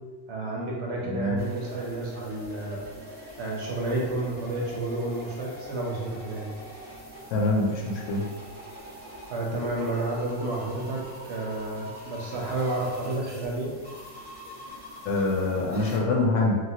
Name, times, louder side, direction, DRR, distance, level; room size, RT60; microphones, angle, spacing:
voice 1, 0.3-2.8 3.4-6.5 9.3-13.7, right 2 dB, 65° right, -3 dB, 0.8 m, -31 dB
voice 2, 1.1-1.4 7.3-8.3 15.1-16.6, left 2 dB, 70° left, -2 dB, 0.9 m, -25 dB
sound 1, 1.4-16.0, equal, 10° right, 0.8 m, -44 dB
2.8 x 2.3 x 2.8 m, 1.4 s
omnidirectional pair, 1.4 m